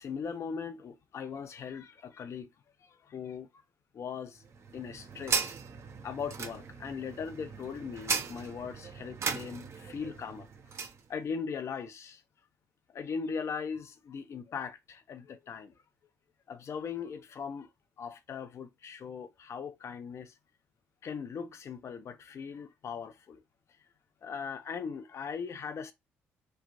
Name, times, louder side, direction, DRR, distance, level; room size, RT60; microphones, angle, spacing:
voice 1, 0.0-2.5 2.8-3.6 3.9-4.4 4.7-5.6 6.0-12.2 12.9-15.7 16.5-17.7 18.0-20.3 21.0-23.4 24.2-25.9, left 6 dB, 45° left, 0.5 m, -39 dB
sound 1, 4.4-11.0, right 5 dB, 45° right, 0.6 m, -37 dB
3.1 x 2.5 x 2.6 m
hypercardioid pair, 45°, 6 cm